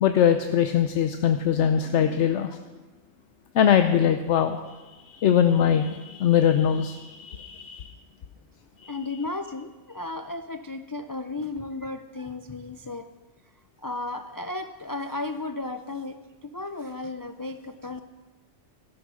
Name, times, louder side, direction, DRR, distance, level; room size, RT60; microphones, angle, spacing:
voice 1, 0.0-2.6 3.5-7.9 8.8-9.0, left 9 dB, 75° left, 8 dB, 1.0 m, -22 dB
voice 2, 8.9-13.1 13.8-18.0, left 2 dB, 35° left, 8 dB, 0.3 m, -34 dB
14.0 x 11.0 x 6.3 m, 1.2 s
omnidirectional pair, 1.2 m